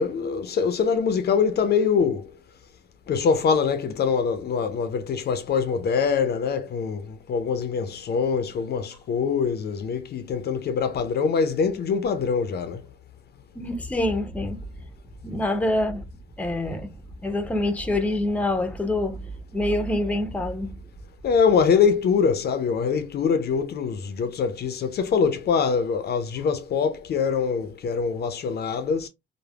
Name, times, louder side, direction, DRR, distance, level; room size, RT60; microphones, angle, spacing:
voice 1, 0.0-2.3 3.1-12.8 21.2-29.1, left 6 dB, 55° left, 0.5 m, -24 dB
voice 2, 13.6-14.6 15.2-16.1 16.4-16.9 17.2-20.8, left 1 dB, 5° left, 0.5 m, -26 dB
3.3 x 2.0 x 2.2 m
cardioid pair, 90°, 20 cm